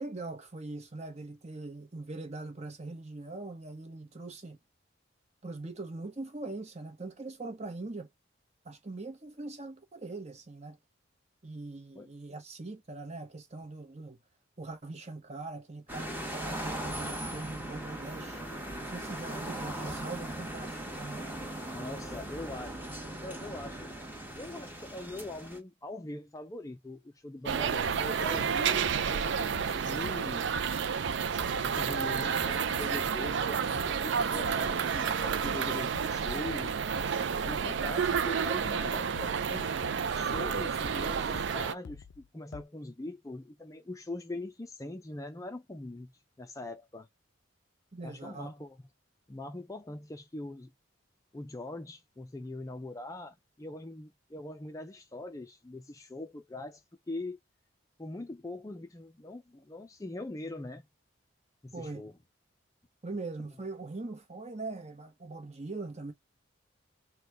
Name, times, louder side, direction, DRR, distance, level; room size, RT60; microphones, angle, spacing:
voice 1, 0.0-4.6 5.4-8.1 8.6-10.8 11.4-14.2 14.6-18.4 18.8-21.3 47.9-48.5 61.7-62.1 63.0-66.1, right 3 dB, 35° right, 1.0 m, -41 dB
sound 1, 15.9-25.6, right 1 dB, 10° right, 1.1 m, -39 dB
voice 2, 21.5-22.8 23.2-24.0 24.4-30.5 31.6-36.8 37.4-39.8 40.1-47.1 48.0-48.9 49.3-50.7 51.3-57.4 58.0-60.9 61.6-62.1, left 2 dB, 15° left, 0.4 m, -42 dB
sound 2, 27.5-41.7, right 6 dB, 60° right, 0.4 m, -30 dB
sound 3, 27.9-39.6 39.8-42.6, left 6 dB, 80° left, 0.5 m, -48 dB
4.0 x 2.2 x 4.6 m
head